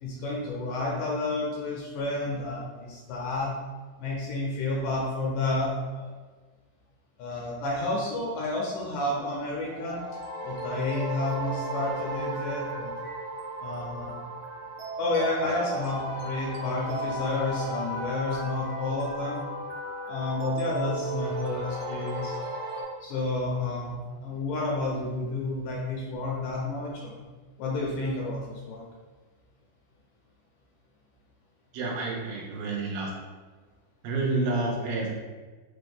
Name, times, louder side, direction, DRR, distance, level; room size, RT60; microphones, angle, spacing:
voice 1, 0.0-3.5 4.0-6.2 7.2-10.0 10.4-12.9 13.6-14.2 15.0-19.4 20.1-22.4 23.0-27.1 27.6-28.8, left 2 dB, 80° left, -3 dB, 2.0 m, -30 dB
sound 1, 9.7-22.8, right 1 dB, 75° right, 2.3 m, -35 dB
voice 2, 31.7-33.1 34.0-35.1, right 3 dB, 90° right, -1 dB, 2.5 m, -29 dB
5.7 x 2.1 x 3.4 m, 1.4 s
omnidirectional pair, 4.1 m